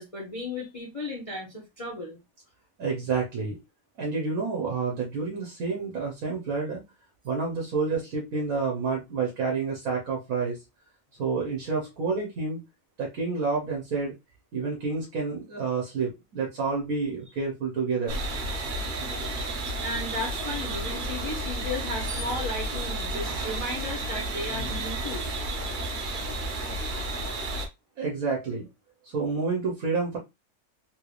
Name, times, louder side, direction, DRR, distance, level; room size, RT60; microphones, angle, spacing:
voice 1, 0.0-2.2 19.8-25.3, left 2 dB, 30° left, 0.8 m, -34 dB
voice 2, 2.8-3.6 4.0-6.8 7.2-10.6 11.2-12.6 13.0-14.1 14.5-18.2 28.0-28.7 29.0-30.2, right 4 dB, 70° right, 1.4 m, -29 dB
sound 1, 18.1-27.7, right 2 dB, 45° right, 0.7 m, -32 dB
3.7 x 3.2 x 2.4 m
omnidirectional pair, 1.5 m